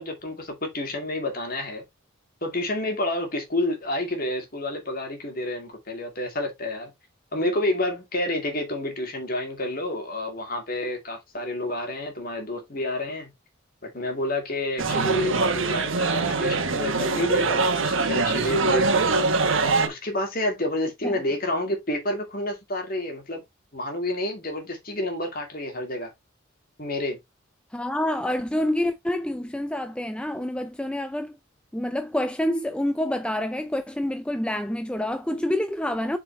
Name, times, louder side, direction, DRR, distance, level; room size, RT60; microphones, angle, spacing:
voice 1, 0.0-1.8 2.4-6.9 7.3-13.3 13.8-19.3 19.8-23.4 23.7-26.1 26.8-27.2, left 1 dB, 45° left, 2.5 m, -29 dB
sound 1, 14.8-19.9, right 3 dB, 70° right, 1.3 m, -23 dB
voice 2, 27.7-31.4 31.7-36.2, left 1 dB, 5° left, 0.3 m, -27 dB
7.3 x 4.8 x 3.2 m
head